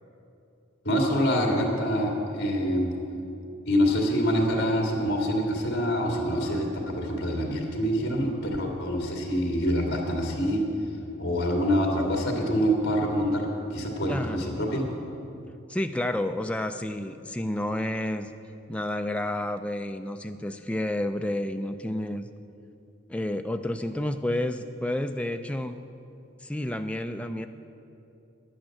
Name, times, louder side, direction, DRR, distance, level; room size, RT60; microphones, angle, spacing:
voice 1, 0.8-2.9 3.6-10.6 11.2-14.9, equal, 50° left, 0 dB, 2.1 m, -26 dB
voice 2, 14.1-14.7 15.7-18.3 18.7-22.3 23.1-25.8 26.4-27.5, left 1 dB, 5° left, 6 dB, 0.3 m, -30 dB
10.5 x 8.7 x 7.6 m, 2.8 s
head